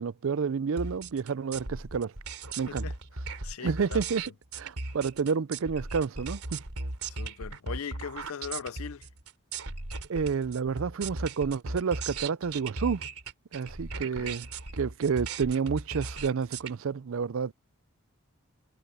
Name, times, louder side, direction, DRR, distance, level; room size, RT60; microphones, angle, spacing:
voice 1, 0.0-2.1 2.6-2.9 3.6-4.2 4.5-6.6 10.1-13.1 13.5-14.5 14.7-17.5, right 5 dB, 65° right, 0.4 m, -30 dB
sound 1, 0.8-16.7, right 3 dB, 85° right, 3.2 m, -37 dB
voice 2, 3.4-4.0 7.1-9.1 14.2-14.4, left 6 dB, 75° left, 0.6 m, -39 dB
head